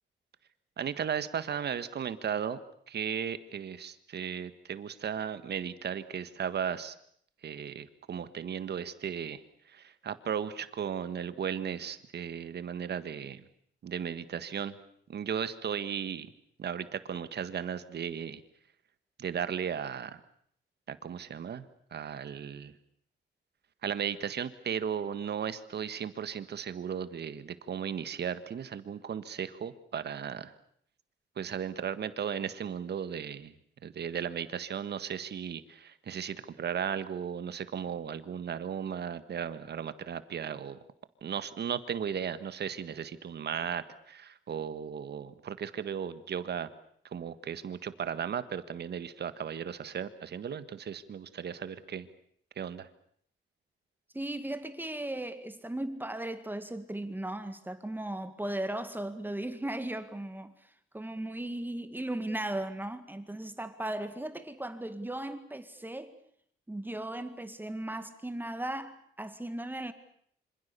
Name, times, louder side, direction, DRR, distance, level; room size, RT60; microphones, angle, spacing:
voice 1, 0.8-2.6 2.9-6.9 7.4-9.4 9.7-13.4 13.8-14.7 15.1-16.3 16.6-18.4 19.2-20.2 20.9-21.6 21.9-22.7 23.8-30.5 31.4-33.5 33.8-40.8 41.2-46.7 47.1-52.1 52.6-52.9, right 8 dB, 55° right, 12 dB, 1.7 m, -36 dB
voice 2, 54.1-66.1 66.7-69.9, right 1 dB, 10° right, 10 dB, 1.9 m, -37 dB
26.5 x 26.0 x 6.9 m, 0.65 s
cardioid pair, 120°, 20 cm